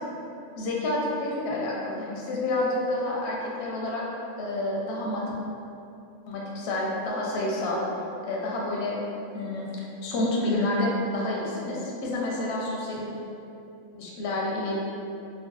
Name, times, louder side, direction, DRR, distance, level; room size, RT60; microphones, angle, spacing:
voice 1, 0.6-4.0 4.4-5.2 6.3-7.8 8.2-8.9 9.3-9.7 10.0-13.1 13.9-14.8, left 1 dB, 65° left, -4 dB, 0.7 m, -29 dB
2.9 x 2.1 x 2.9 m, 2.7 s
omnidirectional pair, 1.4 m